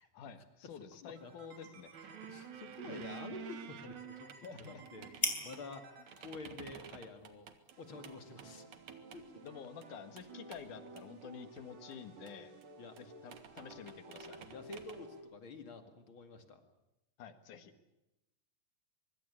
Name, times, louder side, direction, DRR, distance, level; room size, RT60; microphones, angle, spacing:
voice 1, 0.1-1.9 4.4-4.8 9.4-12.6 13.0-14.4 17.2-17.7, left 7 dB, 70° left, 9 dB, 3.2 m, -50 dB
sound 1, 0.9-8.6, left 1 dB, 10° left, 3.9 m, -46 dB
voice 2, 1.0-1.3 2.2-4.3 4.6-5.9 6.2-7.5 7.8-8.7 9.1-9.4 12.8-13.0 13.3-13.4 14.4-16.6, left 3 dB, 45° left, 7 dB, 2.7 m, -49 dB
sound 2, 1.2-3.1 4.0-6.8 7.7-15.2, right 2 dB, 85° right, 5.0 m, -56 dB
sound 3, 1.9-5.8 6.1-7.7 8.0-8.1 8.4-9.5 9.8-9.9 10.2-10.3 10.5-11.3 11.6-11.7 11.9-12.0 12.3-12.4 12.6-12.7 13.0-13.1 13.3-15.0, right 8 dB, 70° right, 3.0 m, -50 dB
24.0 x 22.5 x 8.6 m, 0.95 s
omnidirectional pair, 3.7 m